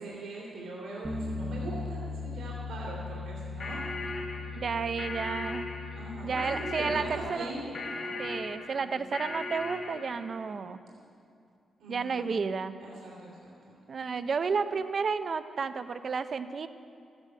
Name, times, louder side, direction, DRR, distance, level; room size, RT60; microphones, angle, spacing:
voice 1, 0.0-3.8 5.9-8.2 8.7-9.0 11.8-12.4 12.8-13.8, right 2 dB, 90° right, -4 dB, 2.9 m, -41 dB
Bass guitar, 1.0-7.3, left 3 dB, 5° right, 1.0 m, -39 dB
sound 1, 3.6-10.2, left 2 dB, 50° left, 1.5 m, -38 dB
voice 2, 4.5-5.7 6.2-7.7 8.2-10.8 11.9-12.7 13.9-16.7, right 5 dB, 40° right, 11 dB, 0.6 m, -32 dB
14.0 x 9.8 x 7.7 m, 2.5 s
wide cardioid pair, 160°, 0 cm